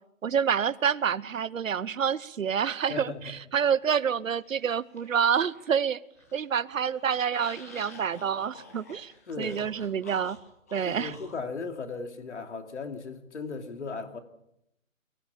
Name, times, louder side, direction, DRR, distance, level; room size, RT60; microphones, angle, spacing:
voice 1, 0.2-6.0 6.3-9.1 9.4-10.4 10.7-11.1, right 7 dB, 75° right, 19 dB, 0.9 m, -28 dB
voice 2, 2.9-3.4 9.3-9.7 10.8-14.2, left 4 dB, 60° left, 7 dB, 2.8 m, -37 dB
sound 1, 4.4-5.8 6.1-11.4, left 2 dB, 10° left, 1.0 m, -49 dB
23.5 x 16.5 x 7.3 m, 0.80 s
hypercardioid pair, 175°, 40 cm